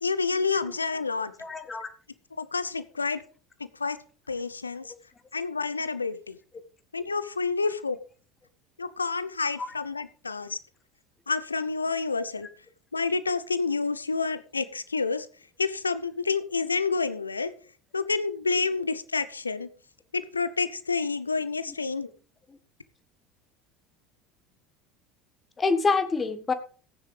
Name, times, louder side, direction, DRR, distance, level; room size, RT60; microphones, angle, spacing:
voice 1, 0.0-1.3 2.4-3.2 3.8-4.0 4.3-4.9 5.3-6.4 6.9-8.0 8.8-10.6 11.3-12.5 12.9-15.3 15.6-17.5 17.9-19.7 20.1-22.1, left 4 dB, 85° left, 15 dB, 0.6 m, -29 dB
voice 2, 1.4-1.9 4.8-4.9 25.6-26.5, left 4 dB, 20° left, 10 dB, 1.4 m, -26 dB
14.5 x 9.6 x 3.3 m, 0.38 s
figure-of-eight pair, 70°, 0 cm